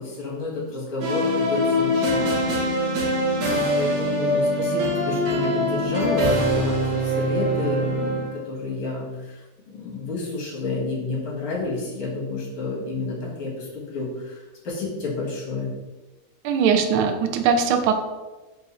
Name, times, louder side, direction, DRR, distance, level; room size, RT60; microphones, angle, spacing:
voice 1, 0.0-2.3 2.6-3.0 3.3-15.7, left 3 dB, 85° left, -4 dB, 2.3 m, -30 dB
sound 1, 1.0-8.4, equal, 60° right, 1.5 m, -23 dB
voice 2, 16.4-17.9, right 6 dB, 85° right, 6 dB, 1.4 m, -20 dB
5.5 x 2.4 x 4.1 m, 1.1 s
omnidirectional pair, 2.3 m